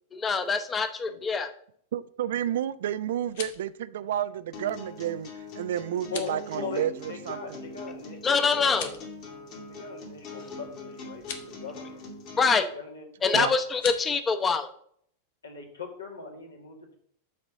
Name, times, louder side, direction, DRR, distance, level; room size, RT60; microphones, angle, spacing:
voice 1, 0.1-1.5 8.2-8.9 12.4-12.7 13.2-14.7, left 5 dB, 20° left, 9 dB, 0.8 m, -24 dB
voice 2, 1.9-7.4 13.3-13.5, right 11 dB, 60° right, 16 dB, 0.3 m, -31 dB
sound 1, 3.1-3.7 6.0-6.4 8.6-9.1 11.1-11.5 13.7-14.0, left 6 dB, 55° left, 1.1 m, -39 dB
sound 2, 4.5-12.5, left 3 dB, 40° left, 2.0 m, -42 dB
voice 3, 6.1-8.9 9.7-12.0 12.7-13.0 13.4-13.5 15.4-16.9, left 6 dB, 75° left, 0 dB, 2.0 m, -40 dB
7.3 x 4.1 x 6.4 m, 0.62 s
figure-of-eight pair, 90°, 0 cm